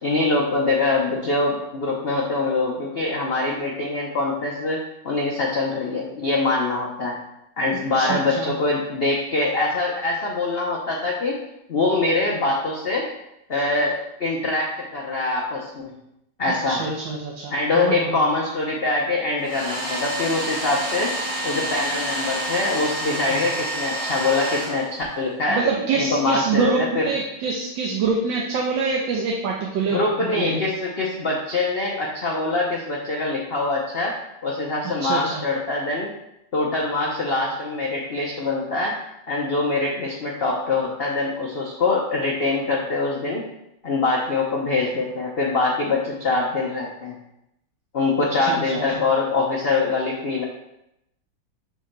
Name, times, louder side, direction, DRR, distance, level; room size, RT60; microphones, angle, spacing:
voice 1, 0.0-7.1 7.6-11.4 11.7-13.1 13.5-16.0 16.4-16.8 17.5-21.1 21.4-25.6 26.0-27.1 29.9-34.1 34.4-36.1 36.5-39.0 39.3-43.4 43.8-47.1 47.9-50.4, left 3 dB, 80° left, -2 dB, 0.5 m, -24 dB
voice 2, 7.9-8.5 16.7-18.2 23.3-23.4 25.5-30.6 35.0-35.4 48.5-49.0, right 4 dB, 80° right, -1 dB, 1.4 m, -25 dB
Domestic sounds home sounds, 19.4-25.3, right 1 dB, 45° right, 3.0 m, -28 dB
6.6 x 6.4 x 2.2 m, 0.84 s
omnidirectional pair, 2.1 m